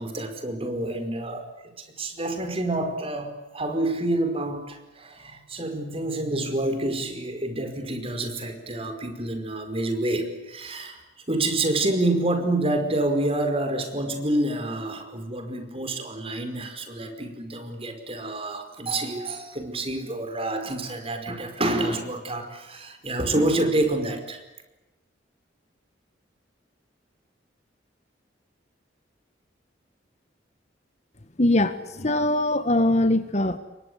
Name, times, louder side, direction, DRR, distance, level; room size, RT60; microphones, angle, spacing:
voice 1, 0.0-1.5 1.8-11.0 11.3-24.4, right 1 dB, 30° right, 6 dB, 5.1 m, -28 dB
voice 2, 31.4-33.6, left 1 dB, 40° left, 12 dB, 1.6 m, -22 dB
29.5 x 23.5 x 8.2 m, 1.0 s
head